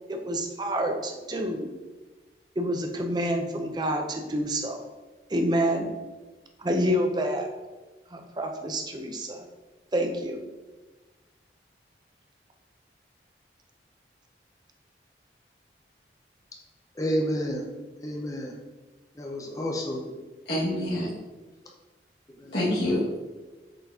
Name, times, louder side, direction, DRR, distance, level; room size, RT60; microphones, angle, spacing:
voice 1, 0.1-1.7 2.6-4.8 5.3-5.9 6.6-7.5 8.1-9.4 9.9-10.4, equal, 25° right, 4 dB, 0.6 m, -28 dB
voice 2, 17.0-17.7 18.0-18.5 19.2-20.1 22.4-22.5, equal, 20° left, 0 dB, 0.7 m, -30 dB
voice 3, 20.5-21.1 22.5-23.2, left 1 dB, 70° left, -9 dB, 1.8 m, -26 dB
7.6 x 4.4 x 2.8 m, 1.2 s
head